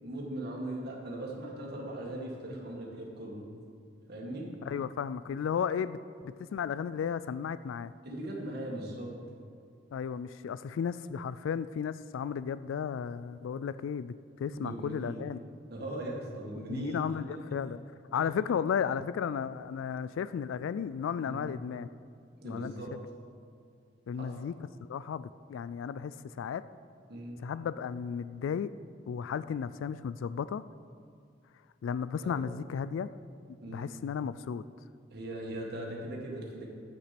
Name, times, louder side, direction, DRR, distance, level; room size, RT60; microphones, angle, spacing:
voice 1, 0.0-3.5 4.1-4.5 8.0-9.1 14.5-15.2 15.7-17.0 17.3-17.4 18.1-18.2 21.2-21.5 22.4-22.9 24.1-24.3 27.1-27.4 32.2-32.4 33.6-33.9 35.1-36.7, right 1 dB, 55° right, -2 dB, 2.1 m, -39 dB
voice 2, 4.6-7.9 9.9-15.4 16.7-17.8 18.1-21.9 22.4-22.7 24.1-24.5 24.9-26.6 27.4-28.7 29.1-30.6 31.8-33.1 33.7-34.6, left 7 dB, 85° left, 15 dB, 0.3 m, -34 dB
9.9 x 8.6 x 6.0 m, 2.2 s
head